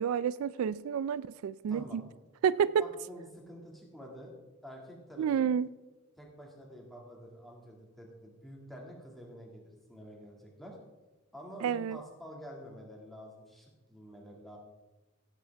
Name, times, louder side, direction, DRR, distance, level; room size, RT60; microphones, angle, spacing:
voice 1, 0.0-2.1 2.4-2.9 5.2-5.7 11.6-12.0, right 7 dB, 85° right, 0.3 m, -29 dB
voice 2, 1.7-2.0 2.8-4.3 4.6-5.5 6.2-10.8 11.3-14.6, equal, ahead, 2.0 m, -48 dB
15.5 x 8.0 x 3.4 m
head